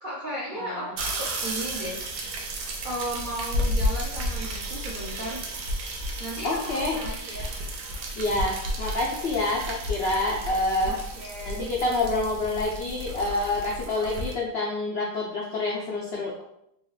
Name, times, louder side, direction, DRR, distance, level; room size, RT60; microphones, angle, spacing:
voice 1, 0.0-2.0 2.8-5.4 6.2-7.5 10.8-11.7, right 1 dB, 55° right, -6 dB, 0.5 m, -35 dB
voice 2, 0.5-0.9 6.4-7.0 8.2-11.0 11.4-16.4, left 2 dB, 75° left, -2 dB, 0.5 m, -27 dB
sound 1, 1.0-14.3, equal, 90° right, 1.3 m, -32 dB
4.1 x 2.4 x 3.1 m, 0.76 s
omnidirectional pair, 1.8 m